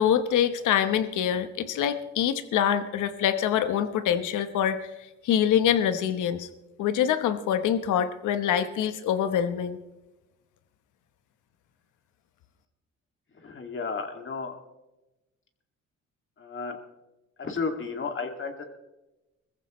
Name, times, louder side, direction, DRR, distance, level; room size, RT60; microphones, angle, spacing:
voice 1, 0.0-4.8 5.2-6.5 6.8-9.8, left 9 dB, 80° left, 11 dB, 1.1 m, -25 dB
voice 2, 13.4-14.6 16.4-16.8 17.4-18.7, left 4 dB, 40° left, 4 dB, 2.3 m, -33 dB
21.5 x 14.5 x 3.1 m, 1.0 s
cardioid pair, 90°, 30 cm